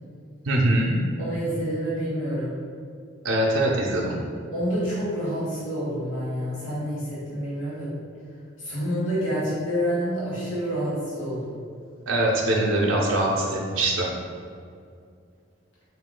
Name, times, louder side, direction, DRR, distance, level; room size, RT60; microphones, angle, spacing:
voice 1, 0.4-0.9 3.2-4.2 12.0-14.1, right 1 dB, 80° right, -2 dB, 0.6 m, -22 dB
voice 2, 1.2-2.6 4.5-7.9 8.6-11.5, equal, 85° left, -10 dB, 1.4 m, -28 dB
4.5 x 2.8 x 3.7 m, 2.3 s
head